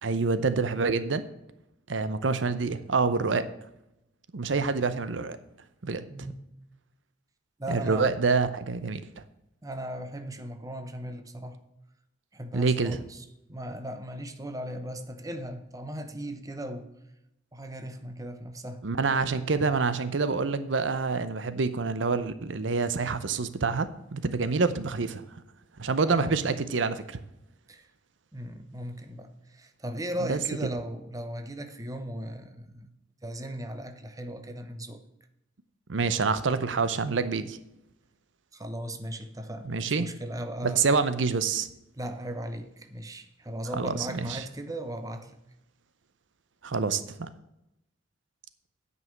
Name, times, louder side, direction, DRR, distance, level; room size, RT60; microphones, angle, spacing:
voice 1, 0.0-1.2 1.9-3.4 4.3-5.4 5.8-6.0 7.7-9.0 12.5-13.0 18.8-25.4 25.8-27.2 30.3-30.4 35.9-37.6 39.6-40.1 40.6-41.7 43.7-44.4 46.6-47.3, right 4 dB, 85° right, 13 dB, 0.7 m, -27 dB
voice 2, 7.6-8.1 9.6-11.6 12.3-13.2 13.5-16.9 17.5-18.9 26.0-26.3 27.7-27.9 28.3-32.9 33.2-35.0 38.5-40.8 42.0-45.3, right 1 dB, 20° right, 8 dB, 1.0 m, -37 dB
9.4 x 5.4 x 7.4 m, 0.86 s
head